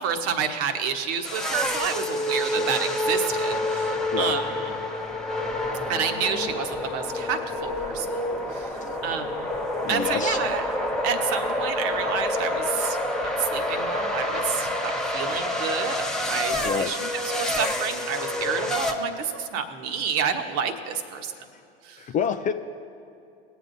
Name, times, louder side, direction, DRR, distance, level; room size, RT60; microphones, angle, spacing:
voice 1, 0.0-4.8 5.9-9.5 9.9-10.6 11.0-15.9 16.2-21.3 21.8-22.0, right 7 dB, 50° right, 6 dB, 1.2 m, -29 dB
sound 1, 1.2-18.9, left 1 dB, ahead, 1.1 m, -28 dB
voice 2, 9.8-10.4 16.6-16.9 22.1-22.5, left 8 dB, 25° left, 9 dB, 0.4 m, -27 dB
18.5 x 8.3 x 2.6 m, 2.5 s
hypercardioid pair, 85°, 30 cm